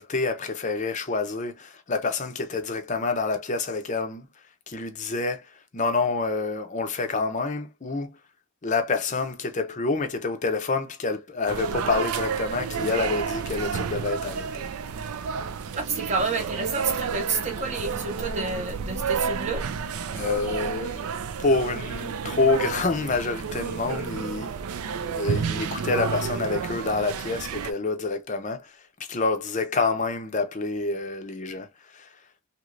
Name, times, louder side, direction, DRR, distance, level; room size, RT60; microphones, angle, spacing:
voice 1, 0.0-4.3 4.7-8.1 8.6-14.7 20.1-21.1 21.4-24.6 25.1-32.2, left 3 dB, 35° left, 0.5 m, -27 dB
sound 1, 11.5-27.7, right 6 dB, 90° right, 0.4 m, -31 dB
voice 2, 15.8-19.6, right 4 dB, 30° right, 0.7 m, -29 dB
3.1 x 2.9 x 2.4 m
head